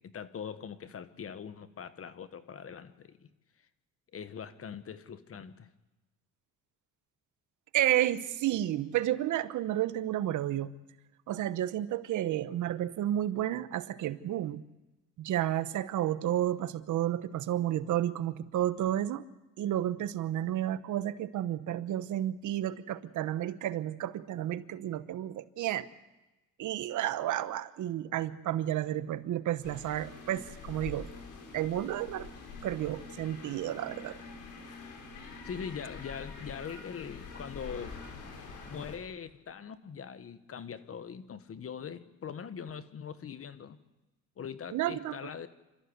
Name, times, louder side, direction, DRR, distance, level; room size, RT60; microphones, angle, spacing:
voice 1, 0.0-3.3 4.1-5.7 35.4-38.1 38.6-43.8 44.4-45.5, left 7 dB, 50° left, 1.4 m, -42 dB
voice 2, 7.7-10.7 11.3-14.6 15.2-19.2 19.6-25.9 26.6-31.1 31.5-32.3 32.6-34.2 44.7-45.2, right 12 dB, 80° right, 1.0 m, -31 dB
sound 1, 29.6-39.0, left 4 dB, 80° left, 4.4 m, -46 dB
27.0 x 14.0 x 8.1 m
cardioid pair, 90°, 30 cm